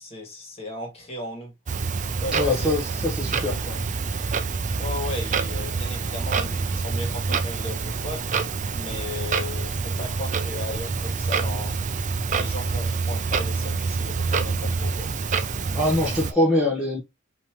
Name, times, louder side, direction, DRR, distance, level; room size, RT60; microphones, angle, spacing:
voice 1, 0.0-1.5 2.2-2.7 4.7-8.3 8.7-11.8 12.3-15.1, left 2 dB, 30° left, 1.8 m, -36 dB
Clock, 1.7-16.3, right 4 dB, 35° right, 0.5 m, -27 dB
voice 2, 2.3-3.8 15.7-17.0, left 1 dB, 5° right, 1.1 m, -23 dB
5.3 x 2.9 x 3.0 m
head